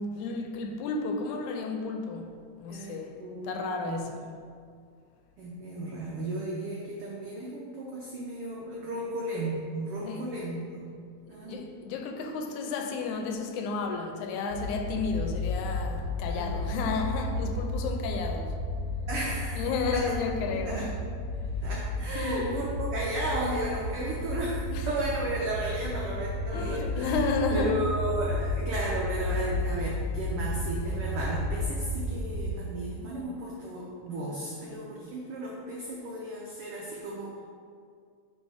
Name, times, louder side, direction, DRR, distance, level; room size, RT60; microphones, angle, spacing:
voice 1, 0.0-2.3 2.6-3.2 3.4-4.4 10.0-10.3 11.3-18.6 19.6-21.0 22.2-22.5 24.7-24.9 26.5-27.8 34.2-35.1, left 4 dB, 85° left, 2.0 m, -32 dB
voice 2, 2.7-4.0 5.4-10.9 11.3-11.6 16.3-16.7 19.1-19.6 19.9-20.0 20.7-20.9 21.6-27.2 27.5-37.3, right 1 dB, 80° right, 1.3 m, -34 dB
sound 1, 14.5-32.5, left 1 dB, 70° left, 1.5 m, -32 dB
5.3 x 4.4 x 4.8 m
omnidirectional pair, 3.4 m